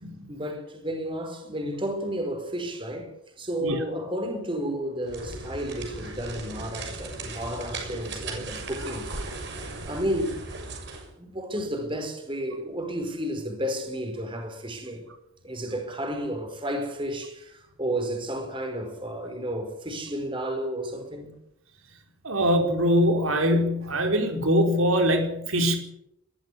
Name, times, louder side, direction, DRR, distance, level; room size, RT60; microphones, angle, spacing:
voice 1, 0.3-3.1 3.4-9.1 9.9-10.4 11.2-15.1 15.4-21.4, equal, 25° right, 4.7 m, -32 dB
sound 1, 5.0-11.1, right 2 dB, 55° right, 6.7 m, -37 dB
voice 2, 22.2-25.8, equal, 85° right, 4.8 m, -23 dB
20.5 x 14.0 x 9.7 m
head